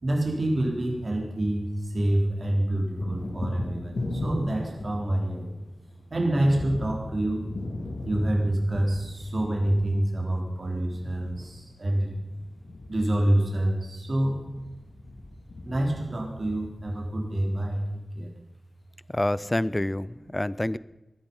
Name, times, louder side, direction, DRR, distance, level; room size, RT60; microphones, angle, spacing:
voice 1, 0.0-1.7 1.9-5.5 6.1-7.5 8.1-12.1 12.9-14.4 15.6-18.3, right 1 dB, 50° right, 0 dB, 3.7 m, -27 dB
Thunder, 0.7-1.9 2.2-17.5, left 2 dB, 75° left, 3.2 m, -38 dB
voice 2, 19.1-20.8, left 1 dB, 15° left, 19 dB, 0.5 m, -27 dB
19.0 x 13.5 x 5.5 m, 1.0 s
wide cardioid pair, 90°, 0 cm